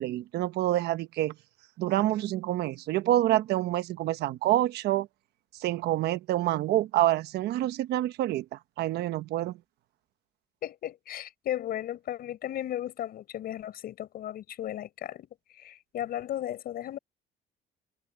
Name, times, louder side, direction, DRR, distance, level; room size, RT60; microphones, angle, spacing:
voice 1, 0.0-1.3 1.8-5.1 5.6-9.6, right 14 dB, 75° right, 1.1 m, -27 dB
voice 2, 10.6-15.3 15.5-17.0, left 12 dB, 65° left, 4.9 m, -35 dB
cardioid pair, 110°, 17 cm